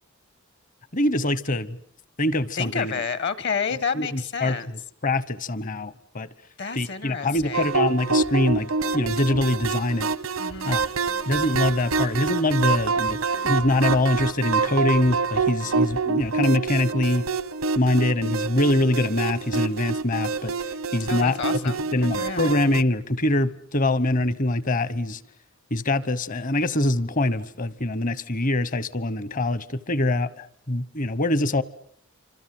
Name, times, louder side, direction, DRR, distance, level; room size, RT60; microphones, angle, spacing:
voice 1, 0.9-1.8 2.2-2.9 3.9-6.3 6.7-10.1 10.6-10.8 11.2-17.2 17.8-21.4 21.6-25.2 25.7-31.6, left 1 dB, 40° left, 1.1 m, -24 dB
voice 2, 2.6-4.7 6.6-7.7 10.4-10.9 21.1-21.9 22.2-22.5, left 6 dB, 55° left, 1.5 m, -30 dB
sound 1, 7.4-10.2 10.5-14.8 15.1-16.3, equal, 80° left, 5.9 m, -47 dB
sound 2, 7.5-22.8, right 4 dB, 90° right, 1.1 m, -26 dB
27.5 x 26.0 x 7.7 m
head